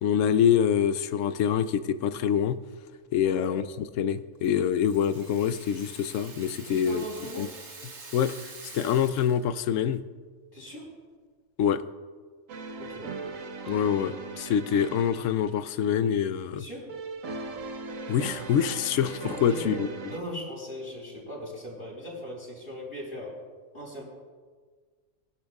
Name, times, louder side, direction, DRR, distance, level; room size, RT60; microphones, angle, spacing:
voice 1, 0.0-2.6 3.1-7.0 7.4-7.5 8.1-10.0 11.6-11.8 13.7-16.7 18.1-19.9, left 8 dB, 80° left, 1.0 m, -25 dB
voice 2, 3.2-3.5 6.6-7.5 10.5-10.9 12.8-13.1 16.5-16.9 19.4-23.4 23.7-24.0, equal, 50° left, 4.4 m, -39 dB
Rattle (instrument), 4.4-9.5, right 3 dB, 60° right, 1.7 m, -46 dB
sound 1, 12.5-15.7 16.9-20.2, right 4 dB, 90° right, 1.3 m, -39 dB
20.0 x 12.0 x 2.4 m
omnidirectional pair, 1.3 m